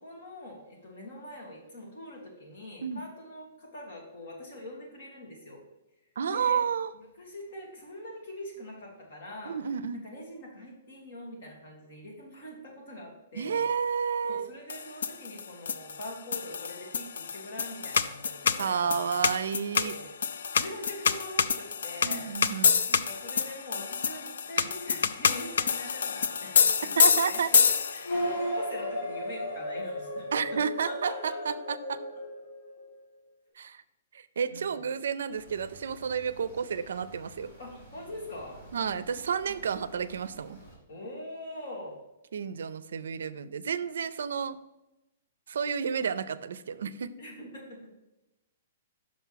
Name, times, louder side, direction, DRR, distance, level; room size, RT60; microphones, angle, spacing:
voice 1, 0.0-5.6 6.3-6.6 6.9-9.6 9.9-13.6 14.2-18.8 19.7-20.1 20.6-26.9 27.2-30.6 30.8-31.6 31.9-32.0 34.5-34.7 37.6-38.6 39.5-39.6 40.9-42.0 47.2-47.9, left 1 dB, 45° left, -1 dB, 2.1 m, -43 dB
voice 2, 6.2-6.9 9.5-10.0 13.3-14.5 18.6-19.9 22.0-22.8 24.6-24.7 27.0-27.5 30.3-32.0 33.6-33.8 34.1-37.5 38.7-40.6 42.3-44.6 45.5-47.1, right 6 dB, 85° right, 15 dB, 0.4 m, -31 dB
sound 1, 14.7-28.2, left 6 dB, 85° left, 0.4 m, -27 dB
sound 2, 28.0-32.9, equal, 70° left, 2.0 m, -34 dB
sound 3, 35.3-40.8, right 1 dB, 30° left, 2.6 m, -52 dB
6.2 x 4.6 x 5.7 m, 0.96 s
hypercardioid pair, 175°, 0 cm